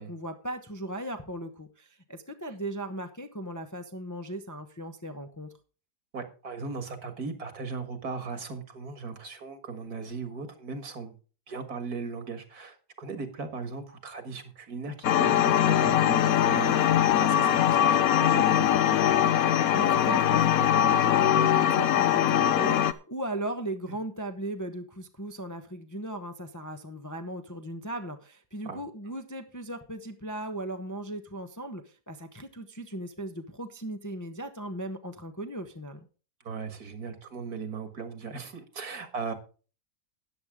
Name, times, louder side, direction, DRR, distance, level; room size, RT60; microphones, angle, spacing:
voice 1, 0.0-5.5 19.7-36.1, right 1 dB, 15° left, 6 dB, 0.7 m, -37 dB
voice 2, 6.1-11.1 11.5-19.0 28.7-28.8 36.4-39.3, right 4 dB, 65° right, 8 dB, 2.3 m, -38 dB
sound 1, 15.0-22.9, left 10 dB, 65° left, 1.1 m, -22 dB
13.5 x 9.8 x 3.6 m, 0.37 s
omnidirectional pair, 1.7 m